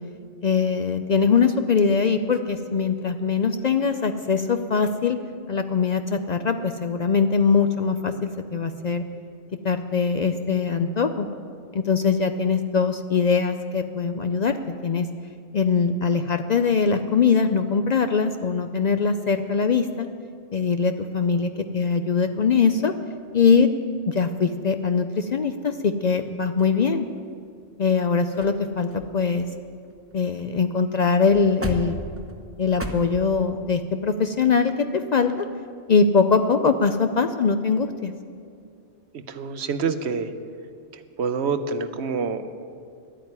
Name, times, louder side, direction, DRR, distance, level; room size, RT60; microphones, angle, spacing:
voice 1, 0.4-5.2 5.5-9.0 9.6-11.3 11.7-15.1 15.5-20.1 20.5-22.9 23.3-23.7 24.1-27.1 27.8-29.5 30.1-32.0 32.6-35.5 35.9-38.1, left 5 dB, 60° left, 8 dB, 0.4 m, -22 dB
sound 1, 26.6-27.4 28.0-28.1 28.3-28.6 28.9-30.5 30.8-30.9 31.2-32.9, right 1 dB, 10° right, 0.9 m, -36 dB
voice 2, 39.1-40.3 40.9-42.4, right 5 dB, 65° right, 11 dB, 0.9 m, -27 dB
11.5 x 8.9 x 9.5 m, 2.3 s
omnidirectional pair, 1.3 m